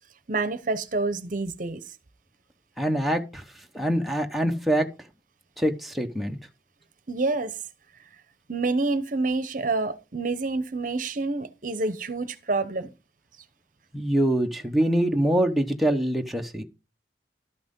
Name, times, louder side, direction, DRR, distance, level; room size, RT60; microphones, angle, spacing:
voice 1, 0.3-1.8 7.1-7.6 8.5-12.9, right 3 dB, 50° right, 0.9 m, -27 dB
voice 2, 2.8-3.4 3.7-4.8 5.6-6.4 13.9-16.6, right 1 dB, ahead, 1.0 m, -24 dB
12.5 x 6.0 x 5.4 m
head